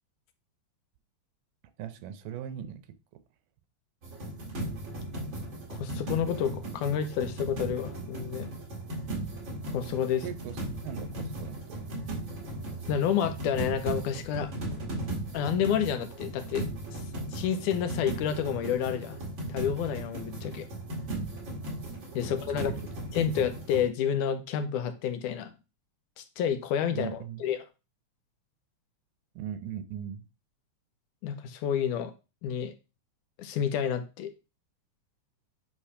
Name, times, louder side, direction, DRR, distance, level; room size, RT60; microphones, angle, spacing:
voice 1, 1.8-2.8 10.2-10.6 10.8-11.8 22.2-22.3 22.7-22.8 26.9-27.5 29.4-30.3, right 9 dB, 90° right, 2.3 m, -39 dB
sound 1, 4.0-23.9, right 1 dB, 40° right, 2.5 m, -37 dB
voice 2, 5.7-8.5 9.7-10.2 12.9-14.5 15.3-17.0 17.3-19.2 19.5-20.7 22.1-22.7 23.1-25.5 26.2-27.6 31.2-32.1 32.4-32.7 33.4-34.3, left 8 dB, 80° left, 2.2 m, -29 dB
8.5 x 3.1 x 5.5 m
omnidirectional pair, 3.6 m